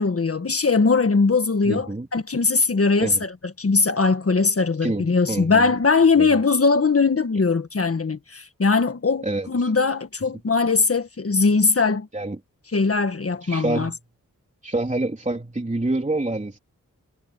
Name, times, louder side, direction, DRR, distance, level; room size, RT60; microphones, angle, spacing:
voice 1, 0.0-12.1 12.7-13.9, left 4 dB, 45° left, 1.6 m, -20 dB
voice 2, 1.7-2.1 3.0-3.2 4.8-5.7 6.2-6.3 9.2-9.5 12.1-12.4 13.4-13.9 14.6-16.6, right 2 dB, 20° right, 3.6 m, -27 dB
cardioid pair, 60°, 32 cm